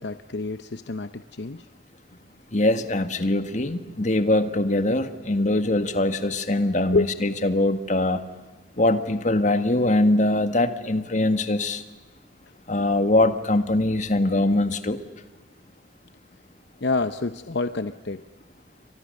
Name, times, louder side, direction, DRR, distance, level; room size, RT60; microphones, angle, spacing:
voice 1, 0.0-1.7 6.9-7.1 16.8-18.2, left 3 dB, 60° left, 11 dB, 0.8 m, -27 dB
voice 2, 2.5-8.2 8.8-11.8 12.7-15.0, left 2 dB, 40° left, 9 dB, 1.7 m, -22 dB
30.0 x 25.0 x 6.6 m, 1.2 s
head